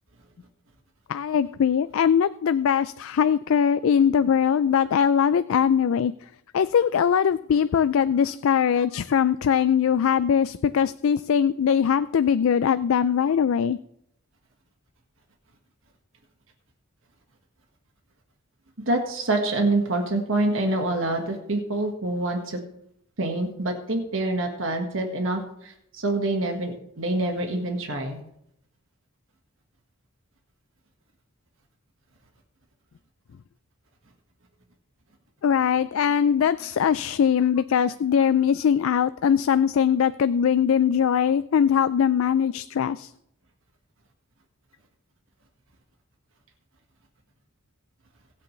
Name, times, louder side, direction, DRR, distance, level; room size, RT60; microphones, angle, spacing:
voice 1, 1.1-6.1 6.5-13.8 35.4-43.1, left 8 dB, 65° left, 14 dB, 0.3 m, -21 dB
voice 2, 18.9-22.6 23.2-28.2, right 2 dB, 65° right, 3 dB, 1.7 m, -26 dB
22.5 x 8.3 x 3.3 m, 0.76 s
head